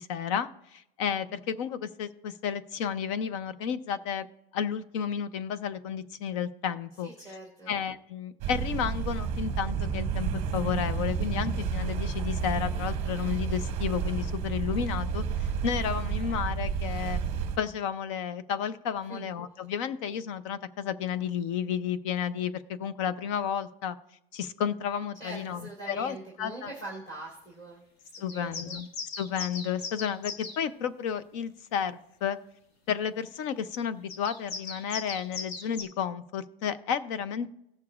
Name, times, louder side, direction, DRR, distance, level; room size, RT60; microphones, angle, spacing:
voice 1, 0.0-4.3 4.5-7.1 7.7-17.2 17.6-24.0 24.3-26.7 28.2-28.9 29.2-32.4 32.9-37.5, left 8 dB, 30° left, 15 dB, 0.5 m, -32 dB
voice 2, 7.0-7.7 19.1-19.3 25.2-28.8, right 2 dB, 15° left, -4 dB, 2.1 m, -43 dB
sound 1, 8.4-17.6, right 6 dB, 20° right, 1.0 m, -31 dB
sound 2, 28.1-30.6 34.1-35.8, left 4 dB, 85° left, 2.0 m, -38 dB
18.5 x 6.6 x 2.4 m, 0.84 s
supercardioid pair, 165°, 30 cm